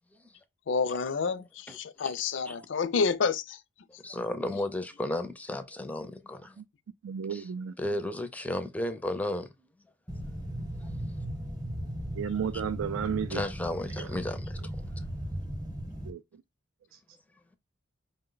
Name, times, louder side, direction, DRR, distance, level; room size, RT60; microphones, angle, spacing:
voice 1, 0.7-3.6, left 5 dB, 65° left, 0.4 m, -29 dB
voice 2, 4.0-6.6 7.3-7.4 7.8-9.5 10.8-11.1 13.3-14.6, left 1 dB, 10° left, 0.4 m, -34 dB
voice 3, 7.0-7.7 12.1-13.5 14.0-14.1 16.0-16.4 16.9-17.0, right 7 dB, 80° right, 0.3 m, -33 dB
sound 1, 10.1-16.1, equal, 20° right, 0.8 m, -37 dB
5.3 x 2.2 x 3.8 m
head